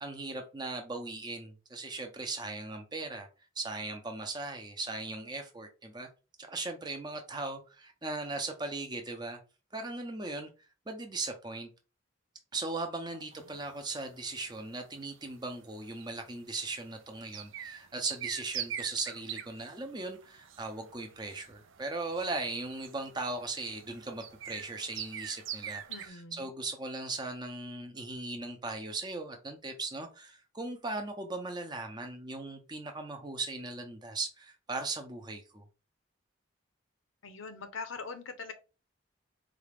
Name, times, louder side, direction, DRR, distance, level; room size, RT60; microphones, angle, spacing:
voice 1, 0.0-3.3 3.6-6.1 6.4-9.4 9.7-10.5 10.9-11.7 12.5-35.6, right 3 dB, 20° right, 0.6 m, -38 dB
voice 2, 13.1-13.6 25.9-26.5 37.2-38.5, left 4 dB, 85° left, 0.7 m, -43 dB
sound 1, 13.3-26.1, right 10 dB, 75° right, 0.4 m, -44 dB
4.2 x 2.4 x 3.3 m
head